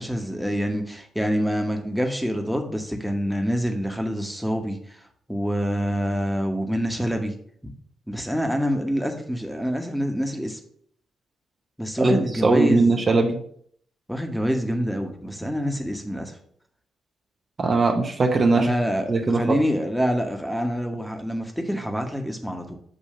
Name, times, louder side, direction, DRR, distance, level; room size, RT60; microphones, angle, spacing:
voice 1, 0.0-5.0 5.3-7.3 8.1-10.6 11.8-13.0 14.1-16.3 18.6-22.8, equal, ahead, 4 dB, 1.0 m, -26 dB
voice 2, 12.0-13.4 17.6-18.7 19.1-19.6, right 3 dB, 40° right, 3 dB, 0.7 m, -20 dB
6.7 x 2.7 x 5.4 m, 0.63 s
hypercardioid pair, 40°, 0 cm